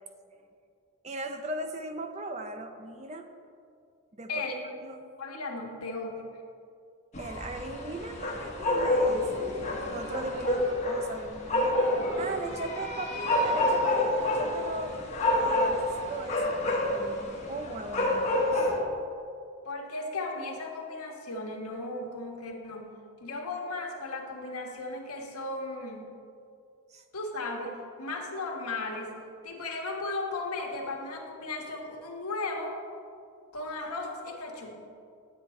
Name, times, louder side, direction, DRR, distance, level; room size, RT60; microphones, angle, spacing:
voice 1, 1.0-3.3 4.1-5.0 7.2-9.5 9.9-15.1 15.4-18.7 26.9-27.0, right 2 dB, 30° right, 6 dB, 0.6 m, -38 dB
voice 2, 5.2-6.2 19.6-22.9 23.2-26.1 27.1-29.1 29.4-32.8 33.5-34.8, left 2 dB, 90° left, 1 dB, 1.4 m, -36 dB
sound 1, 7.1-18.8, left 1 dB, 30° left, 1.2 m, -28 dB
10.0 x 7.8 x 4.4 m, 2.4 s
head